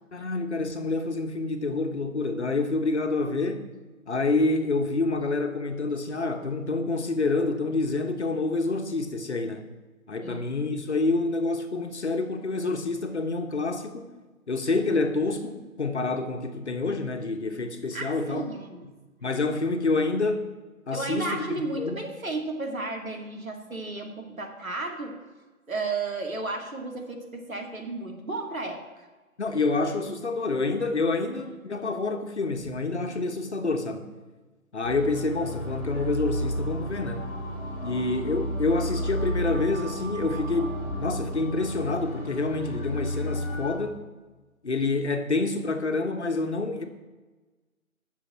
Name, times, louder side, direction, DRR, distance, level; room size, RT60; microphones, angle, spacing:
voice 1, 0.1-3.7 4.1-9.6 10.1-14.1 14.5-18.5 19.2-20.5 20.9-22.0 29.4-34.1 34.7-37.3 37.8-44.0 44.6-46.8, left 3 dB, 50° left, 5 dB, 1.4 m, -27 dB
voice 2, 17.9-18.8 20.9-25.2 25.7-29.1, right 2 dB, 70° right, 2 dB, 2.8 m, -33 dB
sound 1, 34.8-43.7, equal, 5° left, 1.5 m, -32 dB
20.0 x 6.9 x 4.5 m, 1.2 s
figure-of-eight pair, 160°, 42 cm